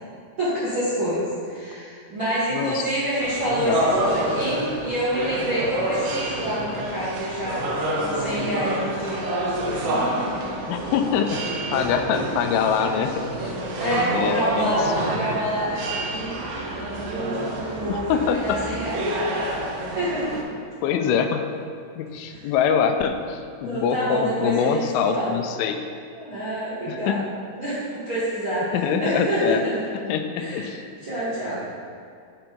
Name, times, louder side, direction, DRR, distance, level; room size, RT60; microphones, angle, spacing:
voice 1, 0.4-7.6 8.0-9.8 13.8-16.4 17.0-19.2 19.8-20.4 22.3-22.5 23.7-24.8 25.1-25.3 26.1-27.2 27.6-28.7 29.0-29.7 30.4-30.7 31.0-31.6, right 1 dB, 45° right, -13 dB, 1.6 m, -27 dB
voice 2, 2.5-2.8 3.5-3.8 10.7-11.4 11.7-13.5 13.9-14.9 17.8-18.6 20.8-21.5 22.0-25.8 26.9-27.2 28.7-29.6 30.1-30.8, left 7 dB, 85° left, 6 dB, 3.0 m, -24 dB
sound 1, 3.2-20.4, right 1 dB, 85° right, 3.5 m, -28 dB
7.7 x 6.0 x 5.2 m, 2.3 s
omnidirectional pair, 5.6 m